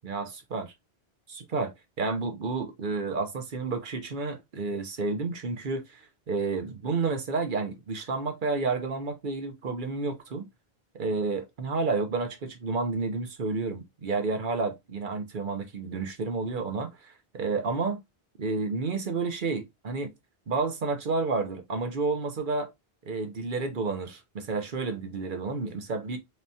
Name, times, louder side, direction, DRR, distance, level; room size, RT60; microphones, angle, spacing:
voice 1, 0.0-0.7 1.3-10.5 10.9-18.0 18.4-20.1 20.5-22.7 23.1-26.2, right 4 dB, 55° right, 1.0 m, -30 dB
4.2 x 3.4 x 2.7 m
omnidirectional pair, 1.1 m